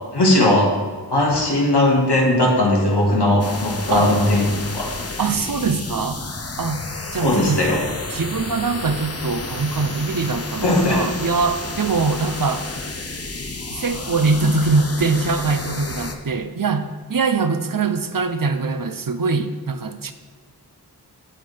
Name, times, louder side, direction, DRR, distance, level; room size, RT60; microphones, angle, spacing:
voice 1, 0.1-0.7 1.1-4.5 4.7-4.9 7.2-7.8 10.6-11.0, left 1 dB, 90° left, -3 dB, 1.8 m, -18 dB
sound 1, 3.4-16.1, left 3 dB, 35° left, 0.8 m, -31 dB
voice 2, 5.2-6.2 6.6-6.8 7.1-7.6 8.1-12.7 13.7-20.1, right 4 dB, 55° right, 9 dB, 0.6 m, -22 dB
8.4 x 7.5 x 3.4 m, 1.5 s
wide cardioid pair, 45°, 40 cm